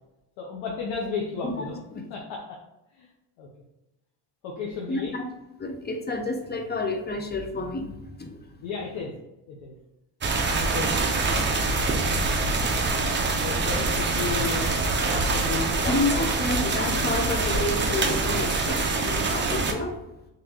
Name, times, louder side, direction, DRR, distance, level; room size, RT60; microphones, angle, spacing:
voice 1, 0.4-1.8 2.1-2.4 3.0-3.1 3.4-3.5 4.4-5.1 8.6-9.1 9.5-9.7 10.6-10.9 11.3-12.1 13.1-15.9, left 5 dB, 75° left, -2 dB, 0.9 m, -34 dB
voice 2, 4.9-5.2 5.6-7.9 8.2-8.4 15.9-19.9, left 2 dB, 20° left, 4 dB, 0.7 m, -29 dB
sound 1, 10.2-19.7, right 3 dB, 25° right, 0.6 m, -25 dB
3.9 x 3.3 x 2.9 m, 0.95 s
supercardioid pair, 90°, 48 cm